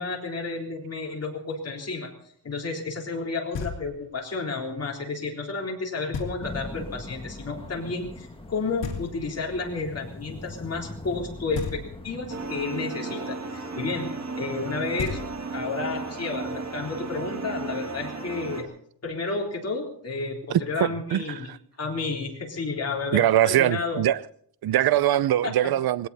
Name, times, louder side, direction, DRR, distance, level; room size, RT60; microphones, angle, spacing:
voice 1, 0.0-2.1 2.4-14.1 14.4-15.2 15.5-18.7 19.0-21.5 21.8-24.0 25.4-25.5, left 3 dB, 35° left, 3.7 m, -31 dB
Knock, 3.5-4.2 6.1-6.8 8.8-9.6 11.5-12.3 14.6-14.7 15.0-15.8, left 5 dB, 70° left, 2.7 m, -35 dB
sound 1, 6.4-12.7, left 2 dB, 10° left, 1.7 m, -41 dB
sound 2, 12.3-18.6, right 3 dB, 35° right, 2.1 m, -34 dB
voice 2, 20.5-21.6 23.1-24.2 24.6-26.1, right 12 dB, 55° right, 0.6 m, -22 dB
20.0 x 17.0 x 4.1 m
wide cardioid pair, 165°, 44 cm